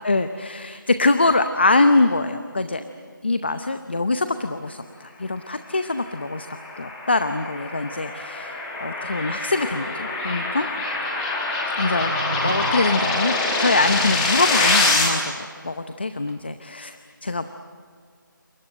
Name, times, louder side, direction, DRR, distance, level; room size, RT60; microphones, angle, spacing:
voice 1, 0.0-2.8 3.2-10.7 11.8-12.1 12.4-17.0 17.2-17.5, left 3 dB, 30° left, 10 dB, 0.8 m, -23 dB
sound 1, 6.2-15.1, left 3 dB, 5° left, 1.1 m, -25 dB
sound 2, 10.6-10.7 11.9-13.1 13.7-14.4 16.3-16.4, right 2 dB, 40° right, 3.0 m, -33 dB
28.0 x 27.0 x 7.8 m, 2.1 s
figure-of-eight pair, 175°, 11 cm